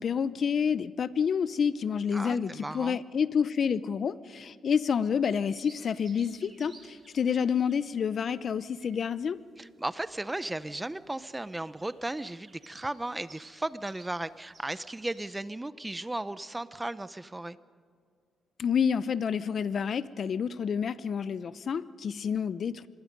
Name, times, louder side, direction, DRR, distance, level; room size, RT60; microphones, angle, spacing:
voice 1, 0.0-9.4 18.6-22.9, left 7 dB, 50° left, 16 dB, 0.7 m, -29 dB
voice 2, 2.1-3.0 9.6-17.6, right 2 dB, 10° right, 15 dB, 0.7 m, -35 dB
sound 1, 5.2-15.5, right 3 dB, 35° right, 4.0 m, -57 dB
26.5 x 21.5 x 5.3 m, 2.2 s
cardioid pair, 115°, 0 cm